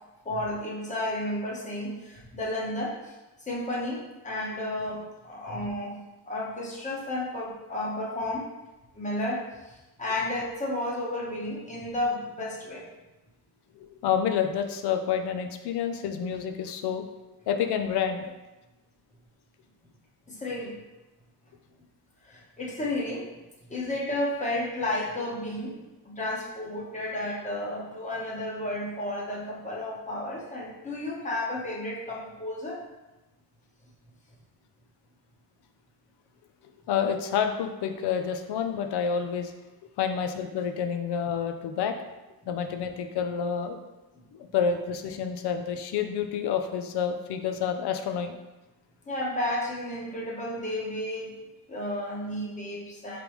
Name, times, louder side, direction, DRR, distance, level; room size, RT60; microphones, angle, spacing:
voice 1, 0.2-3.1 3.4-6.0 6.3-8.5 8.9-12.9 20.3-20.8 22.3-23.3 23.7-32.8 49.1-51.3 51.7-53.2, left 1 dB, 20° left, -4 dB, 1.0 m, -32 dB
voice 2, 13.8-17.1 17.5-18.3 36.9-39.5 40.0-42.0 42.5-43.8 44.3-48.4, left 7 dB, 80° left, 7 dB, 0.6 m, -28 dB
5.2 x 3.4 x 3.1 m, 1.1 s
cardioid pair, 135°, 39 cm